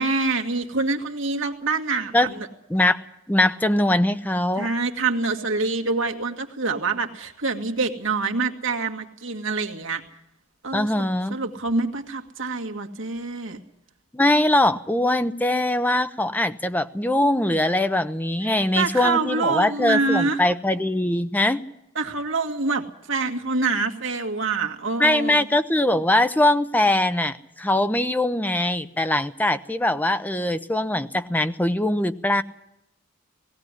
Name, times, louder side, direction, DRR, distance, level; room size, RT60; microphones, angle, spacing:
voice 1, 0.0-2.5 4.6-10.0 10.6-13.6 18.4-20.4 22.0-25.5, right 3 dB, 65° right, 3 dB, 2.0 m, -26 dB
voice 2, 2.7-3.0 3.3-4.7 10.7-11.4 14.1-21.6 25.0-32.4, left 1 dB, 10° left, 11 dB, 0.7 m, -22 dB
19.0 x 16.5 x 9.8 m, 0.82 s
head